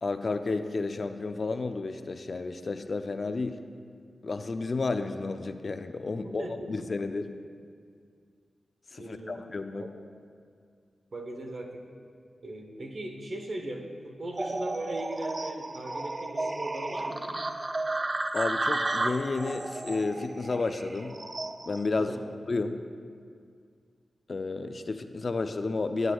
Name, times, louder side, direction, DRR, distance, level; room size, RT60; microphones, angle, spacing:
voice 1, 0.0-3.6 4.2-7.3 8.9-9.9 18.3-21.2 21.7-22.2 22.5-22.8 24.3-26.1, left 3 dB, 55° left, 8 dB, 0.4 m, -31 dB
voice 2, 6.2-6.9 9.0-9.4 9.7-9.9 11.1-11.8 12.4-17.3 22.0-22.3, right 1 dB, 60° right, 2 dB, 0.9 m, -38 dB
sound 1, 14.3-21.9, right 2 dB, 35° right, 0.4 m, -33 dB
11.0 x 7.8 x 2.3 m, 2.2 s
cardioid pair, 60°, 0 cm